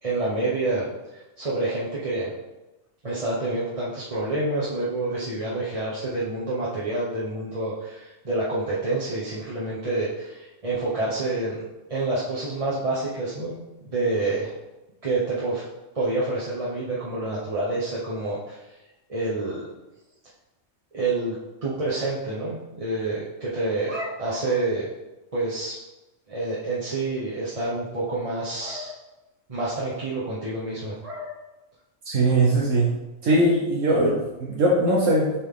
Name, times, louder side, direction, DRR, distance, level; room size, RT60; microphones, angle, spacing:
voice 1, 0.0-2.3 3.0-11.6 11.9-13.5 13.9-14.5 15.0-15.7 15.9-18.6 19.1-19.7 20.9-21.4 21.6-24.9 25.3-25.7 26.3-28.9 29.5-31.3, right 2 dB, 30° right, -8 dB, 1.0 m, -28 dB
voice 2, 32.0-32.9 33.2-35.3, right 1 dB, 75° right, -4 dB, 1.4 m, -20 dB
7.0 x 4.2 x 3.8 m, 1.0 s
omnidirectional pair, 1.3 m